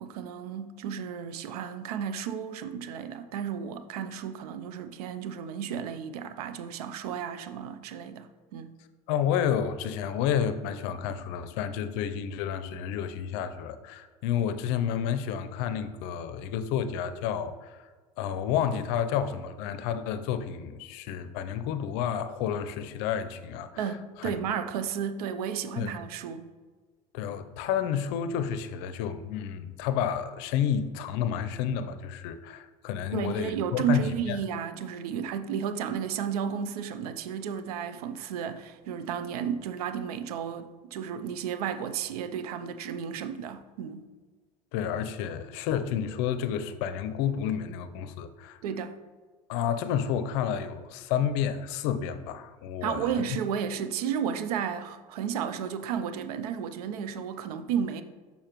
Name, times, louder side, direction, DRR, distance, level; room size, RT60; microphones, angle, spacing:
voice 1, 0.0-8.7 23.8-26.4 33.1-44.1 48.6-48.9 52.8-58.0, right 7 dB, 80° right, 0.5 m, -33 dB
voice 2, 9.1-17.9 18.2-23.9 24.2-24.3 25.8-25.9 27.1-34.4 44.7-48.6 49.5-53.2, left 8 dB, 65° left, 0.5 m, -30 dB
6.5 x 5.5 x 3.0 m
hypercardioid pair, 85°, 19 cm